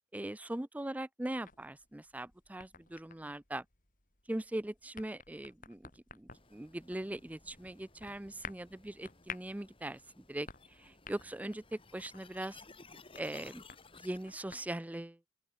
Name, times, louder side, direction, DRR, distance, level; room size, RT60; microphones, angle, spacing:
voice 1, 0.1-3.6 4.3-12.6 13.2-13.6 14.0-15.3, right 1 dB, 10° right, 0.4 m, -41 dB
sound 1, 1.4-14.7, left 6 dB, 45° left, 4.5 m, -53 dB
sound 2, 6.3-14.3, left 4 dB, 30° left, 7.7 m, -58 dB
open air
head